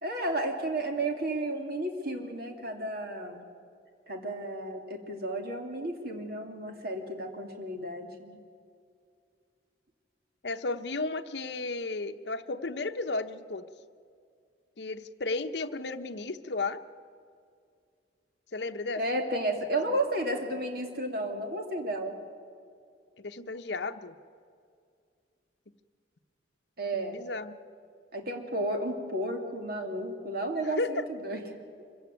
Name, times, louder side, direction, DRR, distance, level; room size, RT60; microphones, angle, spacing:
voice 1, 0.0-3.4 4.1-8.4 19.0-22.2 26.8-27.2 28.1-31.4, right 1 dB, 55° right, 4 dB, 2.5 m, -32 dB
voice 2, 10.4-13.7 14.8-16.8 18.5-19.0 19.8-19.9 23.2-24.2 26.9-27.6 30.6-31.0, left 3 dB, 65° left, 7 dB, 0.9 m, -34 dB
25.5 x 16.0 x 9.3 m, 2.4 s
head